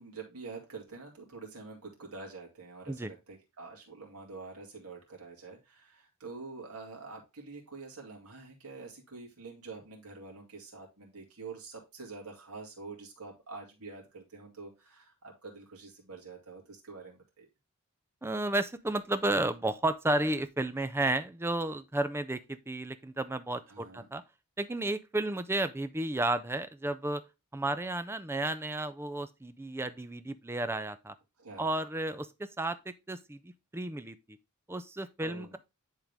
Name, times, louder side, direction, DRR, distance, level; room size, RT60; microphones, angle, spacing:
voice 1, 0.0-17.5 23.7-24.1 31.4-31.7 35.2-35.6, right 4 dB, 80° right, 2.5 m, -46 dB
voice 2, 18.2-24.2 24.6-27.2 27.5-31.1 31.6-34.4 34.7-35.6, right 2 dB, 10° right, 0.5 m, -32 dB
10.0 x 3.8 x 3.5 m
head